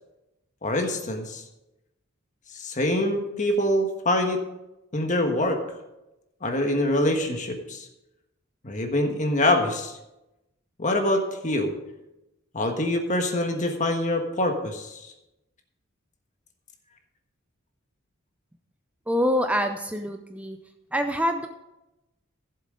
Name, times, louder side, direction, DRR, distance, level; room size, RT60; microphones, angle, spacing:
voice 1, 0.6-1.4 2.5-4.4 4.9-5.6 6.4-7.9 8.6-10.0 10.8-11.7 12.5-15.1, left 1 dB, 40° left, 4 dB, 1.4 m, -25 dB
voice 2, 19.1-20.6 20.9-21.5, equal, 5° right, 7 dB, 0.5 m, -25 dB
15.0 x 7.5 x 3.8 m, 0.95 s
head